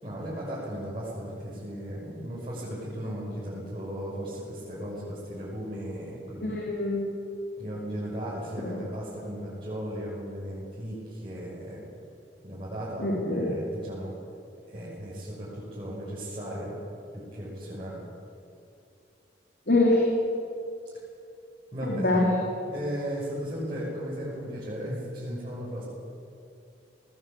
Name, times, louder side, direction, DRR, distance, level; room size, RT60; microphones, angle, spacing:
voice 1, 0.0-6.6 7.6-11.8 12.4-14.1 14.7-16.8 17.1-18.0 21.7-22.2 22.7-25.8, equal, 30° right, -9 dB, 6.3 m, -36 dB
voice 2, 6.4-7.1 8.6-8.8 13.0-13.5 19.7-20.0 21.8-22.4, left 2 dB, 65° left, -2 dB, 3.4 m, -24 dB
20.0 x 19.0 x 8.6 m, 2.5 s
head